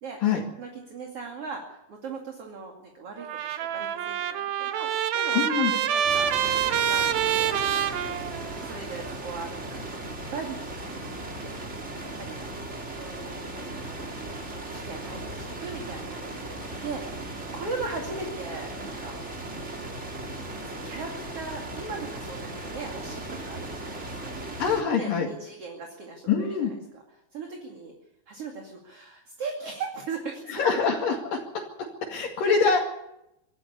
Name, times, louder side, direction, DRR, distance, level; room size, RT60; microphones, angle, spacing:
voice 1, 0.6-6.3 6.6-7.8 8.5-10.9 11.2-11.6 11.9-12.5 13.0-14.1 14.7-17.3 17.5-19.2 20.0-20.1 20.7-24.0 24.4-26.3 26.6-27.0 27.3-27.9 28.3-30.6, right 4 dB, 45° right, 1 dB, 3.1 m, -39 dB
Trumpet, 3.2-8.8, right 9 dB, 80° right, 3.0 m, -26 dB
voice 2, 5.3-5.7 24.6-25.3 26.3-26.7 30.5-31.4 32.1-32.8, left 6 dB, 70° left, -2 dB, 3.9 m, -24 dB
sound 1, 6.0-24.8, right 2 dB, 20° right, 2.5 m, -37 dB
25.5 x 13.0 x 8.5 m, 0.85 s
omnidirectional pair, 4.2 m